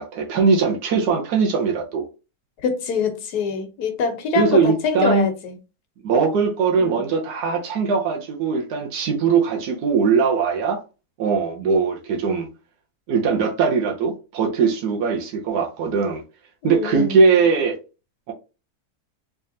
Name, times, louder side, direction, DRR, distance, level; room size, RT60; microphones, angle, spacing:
voice 1, 0.0-2.0 4.4-5.3 6.0-10.8 11.2-12.5 13.1-16.2 16.6-17.8, right 5 dB, 90° right, 1.3 m, -20 dB
voice 2, 2.6-5.5 6.8-7.0 16.6-17.2, left 5 dB, 85° left, 1.4 m, -24 dB
3.4 x 3.4 x 2.7 m
omnidirectional pair, 1.6 m